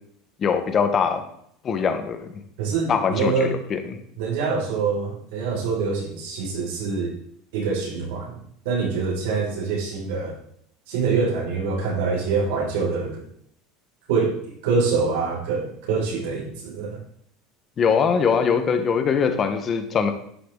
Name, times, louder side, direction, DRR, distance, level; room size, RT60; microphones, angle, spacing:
voice 1, 0.4-1.2 1.6-2.3 2.9-4.0 17.8-20.1, left 6 dB, 20° left, 7 dB, 1.3 m, -22 dB
voice 2, 2.6-3.5 4.2-7.1 7.5-8.4 8.6-10.4 10.9-13.3 14.1-17.0, right 4 dB, 70° right, -2 dB, 5.8 m, -25 dB
11.5 x 10.5 x 3.9 m, 0.68 s
cardioid pair, 175°, 0 cm